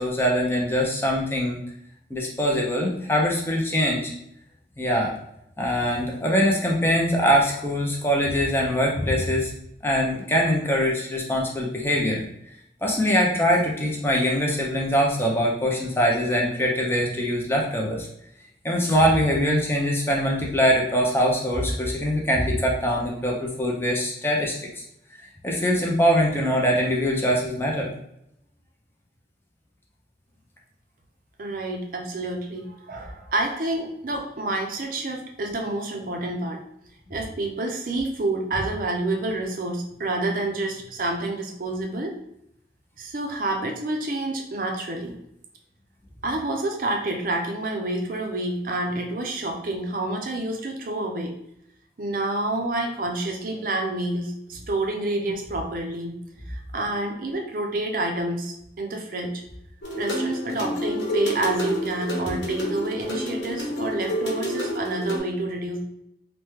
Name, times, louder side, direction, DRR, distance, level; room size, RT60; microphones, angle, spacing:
voice 1, 0.0-1.6 2.1-4.1 4.8-5.1 5.6-9.5 9.8-12.2 12.8-18.1 18.6-24.7 25.4-27.9, equal, 15° left, -2 dB, 0.5 m, -23 dB
voice 2, 31.4-36.6 37.1-42.2 43.0-45.2 46.2-51.4 52.0-56.2 56.5-59.4 60.0-65.8, right 2 dB, 50° right, 2 dB, 0.5 m, -28 dB
sound 1, 59.8-65.2, equal, 80° left, 0.9 m, -29 dB
3.4 x 2.2 x 3.0 m, 0.76 s
head